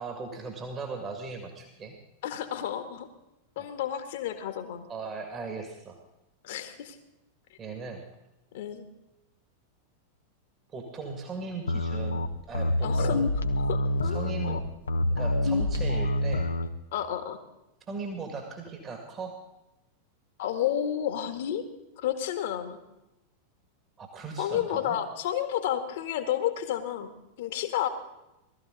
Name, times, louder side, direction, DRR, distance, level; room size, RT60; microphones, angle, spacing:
voice 1, 0.0-2.0 3.6-3.7 4.9-6.0 7.6-8.1 10.7-13.3 14.0-14.7 15.1-16.5 17.9-19.4 24.0-25.0, right 4 dB, 25° right, 4 dB, 2.4 m, -38 dB
voice 2, 2.2-3.1 3.6-4.9 6.4-7.0 8.5-8.9 12.8-13.2 13.7-14.6 16.9-17.4 20.4-21.7 22.0-22.8 24.4-27.1 27.4-27.9, left 10 dB, 55° left, 9 dB, 1.7 m, -31 dB
sound 1, 11.7-16.7, left 1 dB, 75° left, 0.9 m, -27 dB
19.0 x 13.5 x 4.0 m, 0.93 s
figure-of-eight pair, 90°, 0 cm